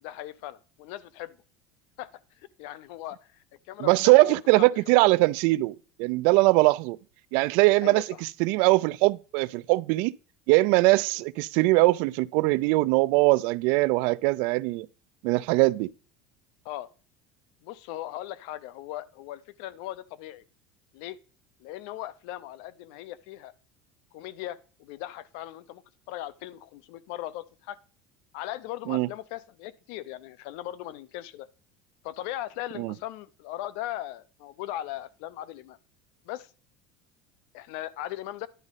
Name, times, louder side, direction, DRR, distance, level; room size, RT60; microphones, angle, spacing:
voice 1, 0.0-1.4 2.0-2.1 2.4-3.2 3.7-5.1 7.8-8.2 16.6-16.9 17.6-20.4 20.9-21.2 21.6-23.5 24.1-25.8 26.1-27.8 28.3-31.5 32.0-35.8 36.2-36.5 37.5-38.5, left 14 dB, 70° left, 0.6 m, -38 dB
voice 2, 3.8-7.0 7.3-10.1 10.5-14.9 15.2-15.9 28.9-29.1 32.8-32.9, right 22 dB, 65° right, 0.3 m, -21 dB
10.5 x 4.8 x 4.1 m
cardioid pair, 145°, 3 cm